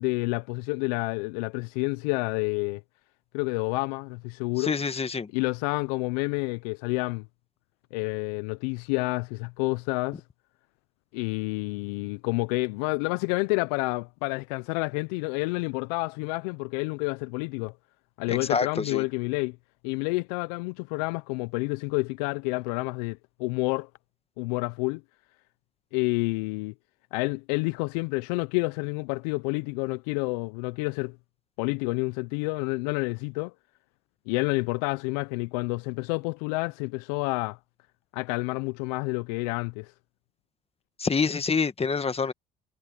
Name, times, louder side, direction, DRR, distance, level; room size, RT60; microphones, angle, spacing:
voice 1, 0.0-2.8 3.3-4.8 5.3-7.3 7.9-10.2 11.1-17.7 18.2-19.6 19.8-23.9 24.4-25.0 25.9-26.7 27.1-31.2 31.6-33.5 34.3-37.6 38.1-39.9, left 27 dB, 80° left, 0.6 m, -29 dB
voice 2, 4.6-5.3 18.3-19.0 41.0-42.3, left 5 dB, 30° left, 1.9 m, -27 dB
hypercardioid pair, 60°, 20 cm